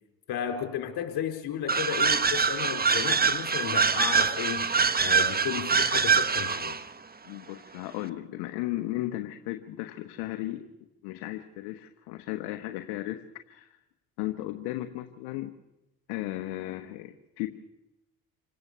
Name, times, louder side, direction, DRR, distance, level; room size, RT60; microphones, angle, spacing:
voice 1, 0.3-4.7 5.0-6.8, left 9 dB, 70° left, 4 dB, 4.6 m, -33 dB
sound 1, 1.7-6.8, right 5 dB, 25° right, 1.2 m, -24 dB
voice 2, 7.2-10.6 11.0-13.8 14.2-15.5 16.1-17.5, left 16 dB, 85° left, 7 dB, 1.2 m, -35 dB
27.0 x 17.5 x 6.9 m, 0.97 s
supercardioid pair, 70°, 40 cm